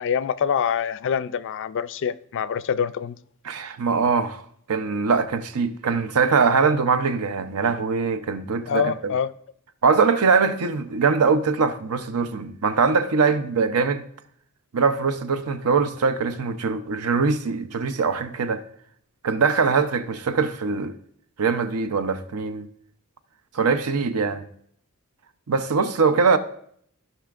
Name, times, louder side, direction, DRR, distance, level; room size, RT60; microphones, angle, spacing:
voice 1, 0.0-3.2 8.7-9.3, left 7 dB, 60° left, 0.3 m, -25 dB
voice 2, 3.5-4.4 4.7-9.1 9.8-14.0 14.7-18.6 19.2-20.9 21.4-22.7 23.5-24.4 25.5-26.4, right 5 dB, 85° right, 0.6 m, -22 dB
15.5 x 5.6 x 2.4 m
head